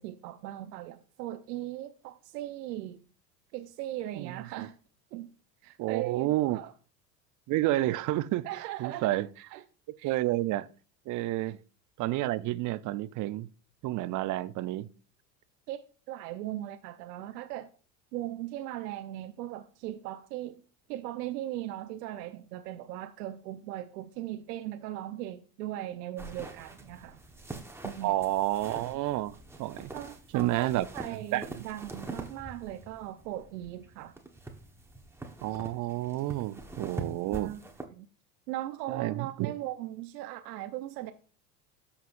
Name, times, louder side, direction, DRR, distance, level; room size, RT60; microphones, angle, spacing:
voice 1, 0.0-3.0 3.5-4.8 5.1-5.3 5.6-6.7 8.4-9.6 10.0-10.2 15.7-17.7 18.1-20.6 20.9-27.2 27.8-28.1 29.9-34.1 37.3-37.6 37.9-38.1 38.5-41.1, right 14 dB, 70° right, 0.8 m, -39 dB
voice 2, 4.2-4.7 5.8-6.6 7.5-8.4 8.8-9.3 10.0-10.7 11.1-11.6 12.0-13.5 13.8-14.9 28.0-29.9 30.3-30.9 31.1-31.6 35.4-37.5 38.9-39.5, right 16 dB, 40° right, 0.6 m, -30 dB
sound 1, 26.2-37.8, right 2 dB, 5° right, 1.2 m, -44 dB
12.5 x 5.7 x 2.6 m
hypercardioid pair, 80°, 49 cm